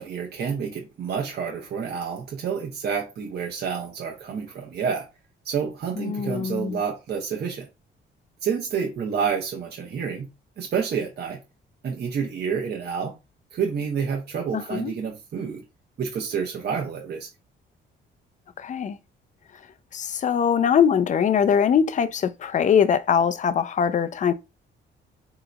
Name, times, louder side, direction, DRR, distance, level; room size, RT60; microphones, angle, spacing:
voice 1, 0.0-5.1 5.4-7.7 8.4-10.3 10.6-11.4 11.8-13.2 13.5-15.6 16.0-17.3, right 6 dB, 55° right, 0.8 m, -29 dB
voice 2, 6.0-6.8 14.5-14.9 18.6-19.0 19.9-24.3, left 7 dB, 40° left, 0.4 m, -22 dB
3.8 x 2.8 x 2.2 m
cardioid pair, 90°, 20 cm